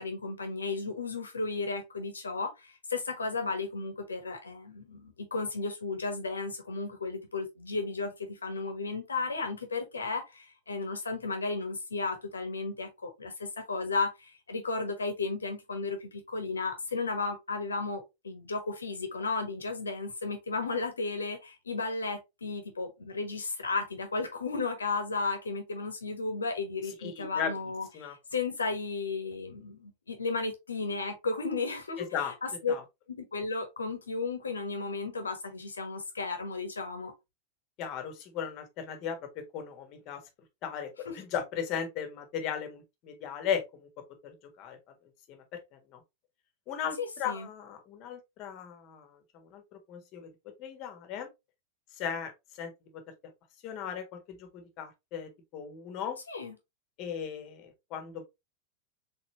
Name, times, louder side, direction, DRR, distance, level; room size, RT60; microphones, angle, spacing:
voice 1, 0.0-32.1 32.4-32.7 33.1-37.1 41.0-41.1 47.0-47.5 56.3-56.5, left 3 dB, 75° left, 1.2 m, -34 dB
voice 2, 26.8-28.1 32.0-32.3 32.7-32.8 37.8-40.2 40.6-43.9 44.2-44.8 45.3-46.0 46.7-50.3 50.6-51.3 52.0-53.0 53.6-56.2 57.0-58.2, left 8 dB, 40° left, 1.4 m, -37 dB
4.3 x 3.6 x 2.9 m
figure-of-eight pair, 90°, 0 cm